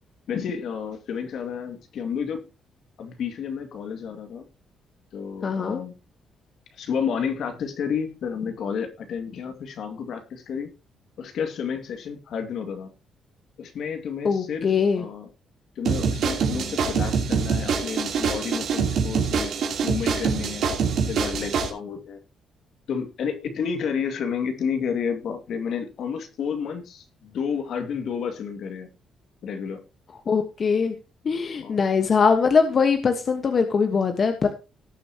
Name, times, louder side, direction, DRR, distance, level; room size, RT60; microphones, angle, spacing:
voice 1, 0.3-2.4 3.0-4.5 5.1-5.9 6.7-10.7 11.2-12.9 13.6-14.7 14.9-15.3 15.8-19.5 19.8-22.2 22.9-28.9 29.4-29.8 31.6-31.8, left 7 dB, 70° left, 6 dB, 2.3 m, -31 dB
voice 2, 5.4-5.8 14.2-15.0 30.3-30.9 31.2-34.5, left 5 dB, 45° left, 6 dB, 1.4 m, -22 dB
sound 1, 15.8-21.7, right 6 dB, 70° right, 3.3 m, -25 dB
18.5 x 6.9 x 3.0 m, 0.30 s
cardioid pair, 90°, 0 cm